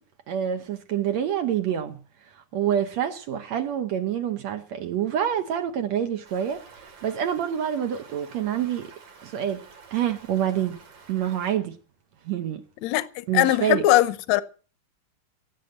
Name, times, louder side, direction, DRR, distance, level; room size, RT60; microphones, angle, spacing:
voice 1, 0.3-2.0 2.3-8.9 9.2-9.6 9.9-10.8 11.1-11.8 12.3-12.6 13.3-13.8, right 9 dB, 65° right, 2.1 m, -27 dB
Stream, 6.2-11.6, right 5 dB, 90° right, 4.8 m, -49 dB
voice 2, 12.8-14.4, left 16 dB, 70° left, 1.9 m, -21 dB
16.5 x 8.4 x 7.9 m
omnidirectional pair, 3.7 m